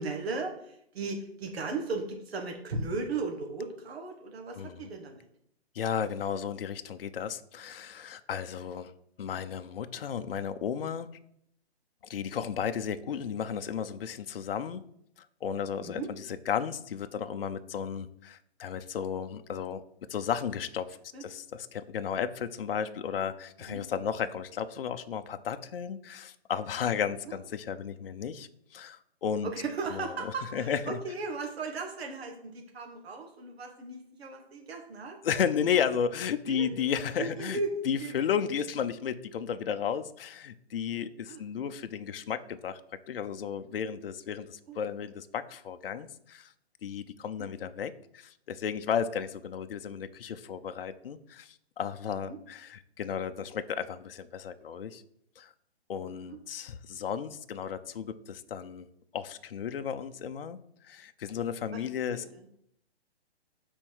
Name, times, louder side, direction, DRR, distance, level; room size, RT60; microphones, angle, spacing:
voice 1, 0.0-5.3 15.8-16.1 21.1-21.2 23.7-23.8 27.3-27.4 29.4-35.2 36.5-36.8 37.2-37.7 38.0-38.4 41.3-41.4 44.7-44.8 47.4-47.5 56.2-56.4 61.7-61.8 62.1-62.5, right 4 dB, 65° right, 2 dB, 1.6 m, -36 dB
voice 2, 4.5-4.9 5.7-8.9 9.2-11.1 12.0-14.8 15.2-19.8 20.1-29.5 29.9-31.0 35.2-37.6 37.8-42.8 43.1-46.5 46.8-55.0 55.4-55.5 55.9-58.9 59.1-60.6 60.8-62.2, left 7 dB, 60° left, 10 dB, 0.6 m, -34 dB
7.3 x 4.4 x 4.6 m, 0.72 s
hypercardioid pair, 170°, 33 cm